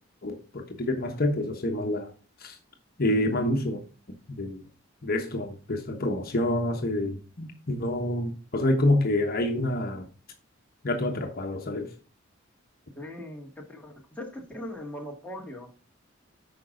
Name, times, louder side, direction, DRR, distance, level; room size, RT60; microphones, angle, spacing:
voice 1, 0.2-2.1 2.4-2.6 3.0-3.8 4.4-4.6 5.0-10.1 10.8-11.9, left 1 dB, 50° left, 1.2 m, -27 dB
voice 2, 13.0-15.7, left 1 dB, 5° left, 1.8 m, -40 dB
9.2 x 5.3 x 3.8 m
head